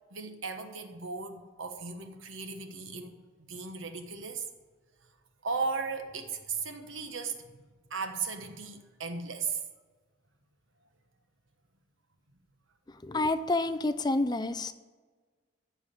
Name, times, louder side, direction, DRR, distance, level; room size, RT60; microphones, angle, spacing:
voice 1, 0.1-3.2 3.5-4.5 5.4-7.5 7.9-9.6, right 4 dB, 85° right, 6 dB, 1.3 m, -36 dB
voice 2, 13.1-14.7, left 2 dB, 20° left, 12 dB, 0.4 m, -28 dB
14.0 x 4.9 x 8.7 m, 1.4 s
head